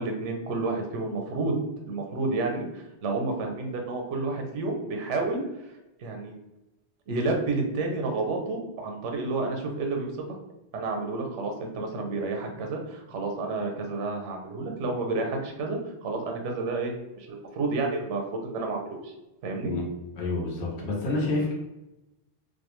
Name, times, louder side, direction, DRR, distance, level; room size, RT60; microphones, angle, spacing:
voice 1, 0.0-1.6 1.9-5.7 6.0-6.3 7.1-10.2 10.7-19.1 19.4-19.7, right 3 dB, 85° right, 3 dB, 0.9 m, -30 dB
voice 2, 20.2-21.5, left 2 dB, 70° left, -1 dB, 1.0 m, -28 dB
2.4 x 2.1 x 3.0 m, 0.96 s
omnidirectional pair, 1.2 m